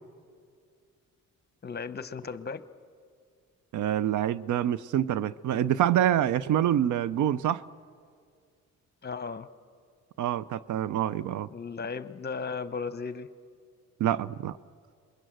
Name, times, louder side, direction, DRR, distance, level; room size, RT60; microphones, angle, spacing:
voice 1, 1.6-2.6 9.0-9.5 11.5-13.3, left 5 dB, 35° left, 13 dB, 1.0 m, -35 dB
voice 2, 3.7-7.6 10.2-11.5 14.0-14.6, right 11 dB, 75° right, 18 dB, 0.7 m, -26 dB
28.0 x 22.0 x 7.9 m, 2.2 s
cardioid pair, 90°, 30 cm